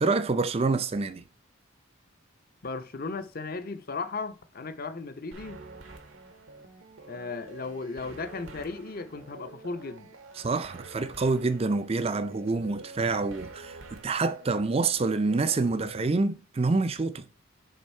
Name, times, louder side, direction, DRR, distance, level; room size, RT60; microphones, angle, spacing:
voice 1, 0.0-1.2 10.4-17.3, right 3 dB, 30° right, 0.4 m, -27 dB
voice 2, 2.6-5.6 7.1-10.1, left 4 dB, 45° left, 0.6 m, -36 dB
sound 1, 5.3-16.0, right 3 dB, 70° right, 0.9 m, -47 dB
6.5 x 3.5 x 4.3 m
head